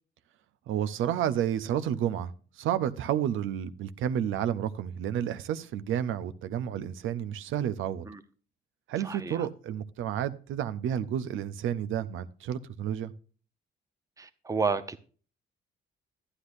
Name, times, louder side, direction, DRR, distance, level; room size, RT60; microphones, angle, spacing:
voice 1, 0.7-8.1 8.9-13.1, right 10 dB, 85° right, 0.7 m, -31 dB
voice 2, 9.0-9.4 14.2-15.0, right 4 dB, 15° right, 0.8 m, -31 dB
11.5 x 9.9 x 2.6 m
cardioid pair, 90°, 20 cm